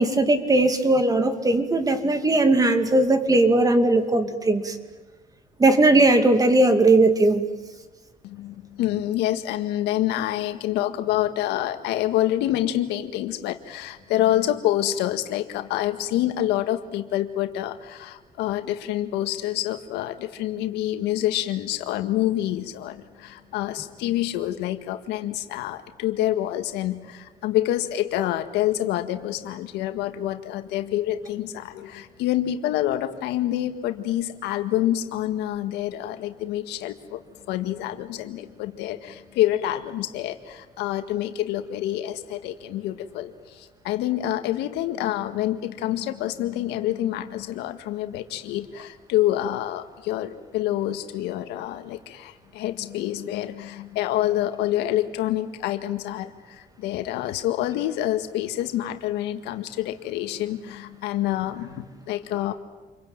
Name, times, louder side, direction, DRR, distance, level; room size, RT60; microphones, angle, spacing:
voice 1, 0.0-4.8 5.6-7.4, right 2 dB, 20° right, 8 dB, 2.6 m, -19 dB
voice 2, 8.2-37.2 37.5-62.5, left 13 dB, 90° left, 8 dB, 1.8 m, -27 dB
28.0 x 23.0 x 9.0 m, 1.2 s
cardioid pair, 110°, 17 cm